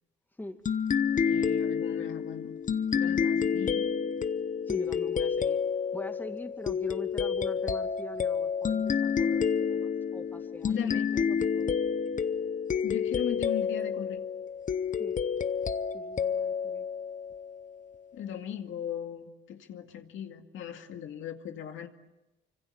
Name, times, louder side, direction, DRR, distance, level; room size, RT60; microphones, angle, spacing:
sound 1, 0.7-17.8, left 7 dB, 40° left, 0.9 m, -29 dB
voice 1, 1.1-2.6 2.9-3.9 10.6-11.1 12.8-14.2 18.1-21.9, left 10 dB, 80° left, 5 dB, 2.2 m, -38 dB
voice 2, 4.7-5.6 5.9-11.9 15.0-15.2 15.9-16.9, left 1 dB, 10° left, 6 dB, 2.2 m, -43 dB
25.5 x 25.0 x 8.2 m, 0.98 s
cardioid pair, 90°, 20 cm